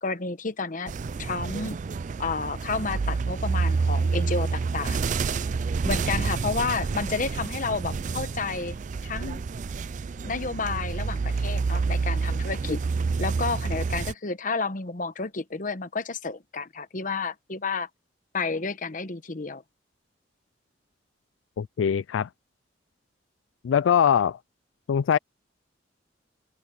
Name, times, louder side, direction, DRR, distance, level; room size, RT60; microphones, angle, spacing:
voice 1, 0.0-0.9 1.2-1.8 2.2-5.0 5.8-8.8 9.0-9.5 10.2-12.8 13.2-17.9 18.3-19.6, left 4 dB, 45° left, 1.0 m, -31 dB
sound 1, 0.9-14.1, right 4 dB, 40° right, 0.4 m, -28 dB
voice 2, 21.6-22.3 23.6-24.4 24.9-25.2, left 8 dB, 90° left, 0.3 m, -22 dB
head